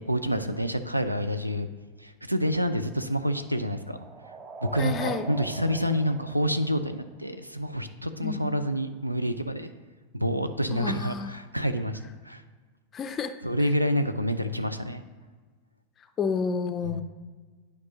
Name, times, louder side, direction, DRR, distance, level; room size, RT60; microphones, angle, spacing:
voice 1, 0.0-1.7 2.0-4.0 4.6-9.7 10.1-12.0 12.2-12.4 13.4-15.0, equal, 85° right, 10 dB, 0.4 m, -28 dB
sound 1, 2.5-7.3, right 4 dB, 25° right, 0.5 m, -42 dB
voice 2, 4.8-5.3 8.2-8.5 10.7-11.3 12.9-13.3 16.2-17.0, left 5 dB, 25° left, 9 dB, 0.4 m, -30 dB
11.0 x 4.7 x 2.8 m, 1.4 s
figure-of-eight pair, 90°, 0 cm